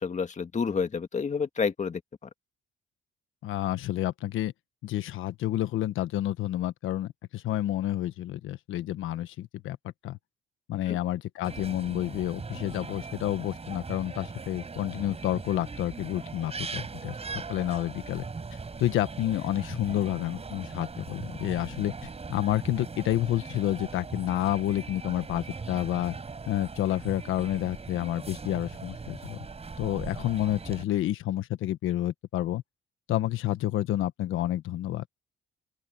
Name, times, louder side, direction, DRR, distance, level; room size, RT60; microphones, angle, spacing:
voice 1, 0.0-2.3 10.9-11.0, left 5 dB, 35° left, 2.0 m, -29 dB
voice 2, 3.4-4.5 4.8-10.2 10.7-18.2 18.8-26.1 26.5-29.4 29.8-32.6 33.1-35.0, left 13 dB, 85° left, 1.4 m, -29 dB
sound 1, 11.4-30.8, right 4 dB, 30° right, 6.6 m, -40 dB
open air
cardioid pair, 90°, 20 cm